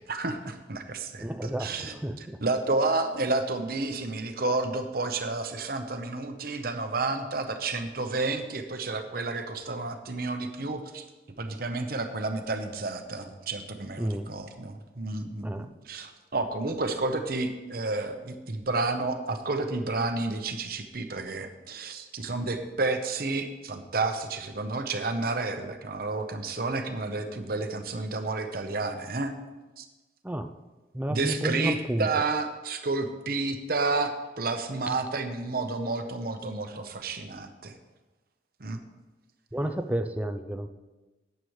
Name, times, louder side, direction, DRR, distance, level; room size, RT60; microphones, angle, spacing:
voice 1, 0.1-11.0 11.4-29.3 29.8-29.9 31.1-37.7 38.6-38.8, right 3 dB, 55° right, 6 dB, 0.9 m, -31 dB
voice 2, 1.2-2.4 14.0-14.3 15.4-15.7 30.2-30.5 30.9-32.1 39.5-40.7, right 1 dB, 10° right, 6 dB, 0.5 m, -31 dB
13.5 x 9.3 x 3.2 m, 1.2 s
head